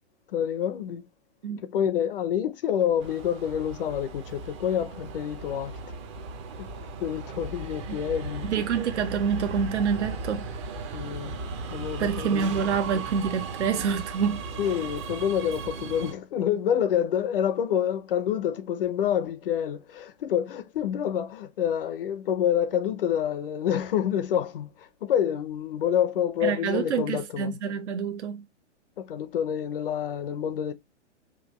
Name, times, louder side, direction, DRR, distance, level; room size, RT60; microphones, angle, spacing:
voice 1, 0.3-1.0 1.6-5.8 6.6-6.7 7.0-8.5 10.9-11.4 11.7-12.8 14.6-27.6 29.0-30.7, left 9 dB, 50° left, 0.7 m, -27 dB
Subway metro underground, 3.0-16.1, right 3 dB, 25° right, 0.6 m, -37 dB
voice 2, 8.4-10.4 12.0-14.4 26.4-28.4, right 7 dB, 70° right, 0.9 m, -27 dB
5.0 x 2.6 x 3.0 m
hypercardioid pair, 155°, 36 cm